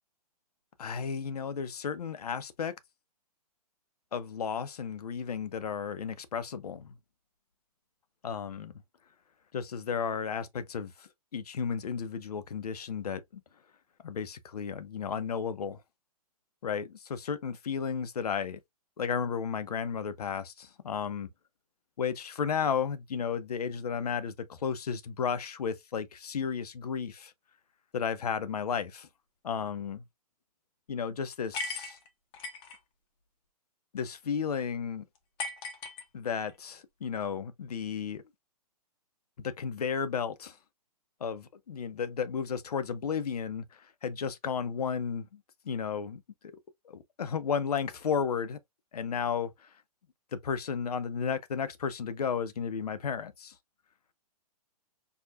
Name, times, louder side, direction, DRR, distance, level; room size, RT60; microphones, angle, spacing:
voice 1, 0.8-2.7 4.1-7.0 8.2-8.7 9.5-13.4 14.0-15.8 16.6-18.6 19.0-21.3 22.0-27.3 27.9-29.1 29.4-30.0 30.9-32.0 33.9-35.0 36.1-38.2 39.4-40.6 41.2-43.6 44.0-45.4 45.7-46.5 46.9-48.6 48.9-49.5 50.3-53.5, left 6 dB, 75° left, 0.7 m, -33 dB
sound 1, 31.5-32.8 35.4-36.5, left 3 dB, 25° left, 0.8 m, -38 dB
4.8 x 2.4 x 2.3 m
hypercardioid pair, 125°, 20 cm